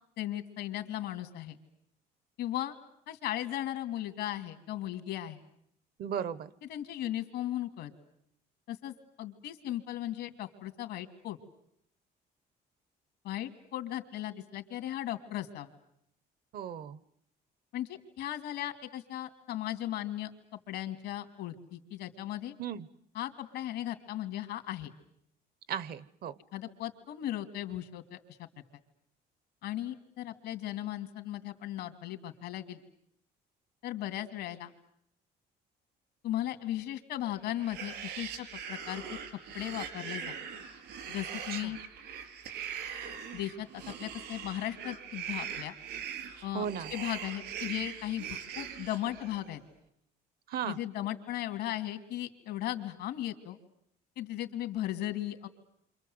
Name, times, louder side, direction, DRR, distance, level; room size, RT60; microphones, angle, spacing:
voice 1, 0.2-1.6 2.4-2.8 3.1-5.4 6.7-7.9 8.7-11.4 13.2-15.7 17.7-20.3 20.7-22.5 23.1-24.9 26.5-28.5 29.6-32.8 33.8-34.7 36.2-39.0 39.5-40.3 41.1-41.8 43.3-45.7 46.4-49.6 50.6-53.6 54.2-55.5, left 13 dB, 85° left, 8 dB, 2.6 m, -37 dB
voice 2, 6.0-6.5 16.5-17.0 22.6-22.9 25.7-26.3 41.5-41.7 46.5-46.9 50.5-50.8, right 8 dB, 65° right, 18 dB, 1.1 m, -36 dB
sound 1, 37.5-49.5, right 8 dB, 80° right, 4.5 m, -41 dB
29.0 x 26.0 x 7.9 m, 0.71 s
cardioid pair, 110°, 17 cm